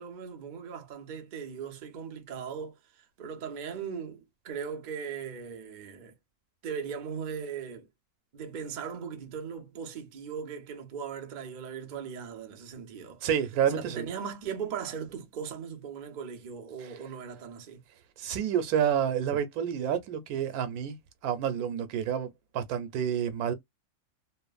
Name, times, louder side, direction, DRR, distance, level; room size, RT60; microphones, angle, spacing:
voice 1, 0.0-6.1 6.6-7.9 8.3-13.3 13.7-17.8, right 7 dB, 50° right, 0.5 m, -39 dB
voice 2, 13.2-14.1 16.8-16.9 18.2-21.0 21.2-23.5, right 8 dB, 90° right, 1.1 m, -29 dB
3.1 x 2.0 x 2.3 m
omnidirectional pair, 1.5 m